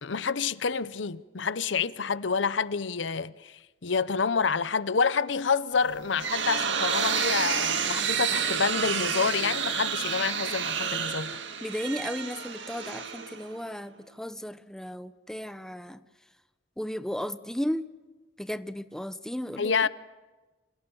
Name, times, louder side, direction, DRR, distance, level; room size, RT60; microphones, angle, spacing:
voice 1, 0.0-11.4 19.6-19.9, left 5 dB, 75° left, 0.8 m, -28 dB
sound 1, 5.8-13.7, right 7 dB, 70° right, 2.1 m, -30 dB
sound 2, 5.9-8.5, equal, 50° left, 6.5 m, -53 dB
voice 2, 11.6-16.0 16.8-17.9 18.4-19.9, equal, 5° left, 0.8 m, -35 dB
28.5 x 27.0 x 7.1 m
head